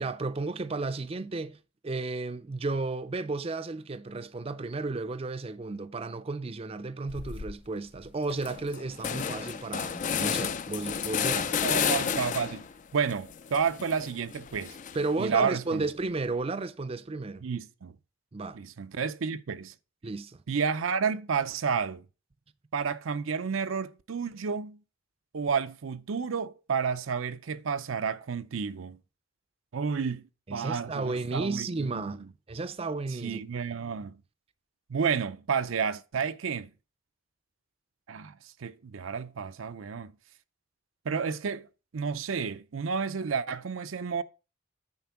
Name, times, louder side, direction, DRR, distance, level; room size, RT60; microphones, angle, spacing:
voice 1, 0.0-11.6 14.9-17.4 18.3-18.6 20.0-20.4 30.5-33.4, right 3 dB, 30° right, 0.5 m, -33 dB
sound 1, 7.1-7.6 8.0-8.1 8.3-12.7 13.1-15.2, left 7 dB, 40° left, 0.3 m, -32 dB
voice 2, 11.6-12.7 12.9-14.8 15.2-15.9 17.4-18.0 18.5-19.7 20.5-22.0 22.7-24.8 25.3-29.0 29.7-32.2 33.2-34.2 34.9-36.7 38.1-40.1 41.0-41.7 41.9-44.2, right 6 dB, 80° right, 0.5 m, -31 dB
9.5 x 4.4 x 5.7 m
head